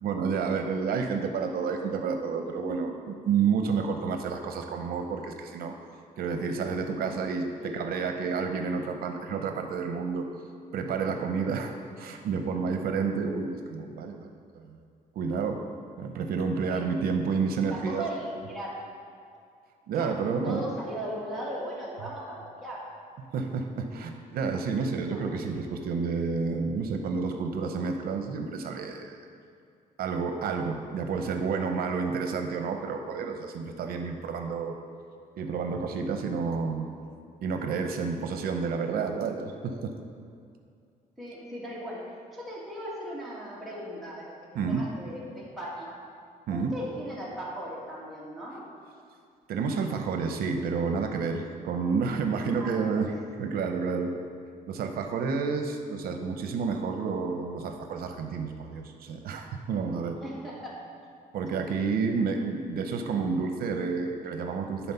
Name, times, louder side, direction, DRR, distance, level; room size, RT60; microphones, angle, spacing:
voice 1, 0.0-5.7 6.2-10.3 10.7-11.7 12.0-14.7 15.2-15.6 16.0-18.1 19.9-20.6 23.3-29.2 30.0-34.8 35.4-36.9 37.4-39.9 44.5-44.8 46.5-46.7 49.5-53.1 53.4-54.1 54.7-60.2 61.3-64.9, right 5 dB, 80° right, 5 dB, 0.7 m, -30 dB
voice 2, 17.7-18.8 19.9-20.1 20.4-22.8 25.0-25.5 41.2-45.9 46.5-48.6 52.6-53.0 60.2-60.8, equal, ahead, -7 dB, 1.8 m, -38 dB
10.0 x 4.3 x 5.7 m, 2.3 s
cardioid pair, 175°, 15 cm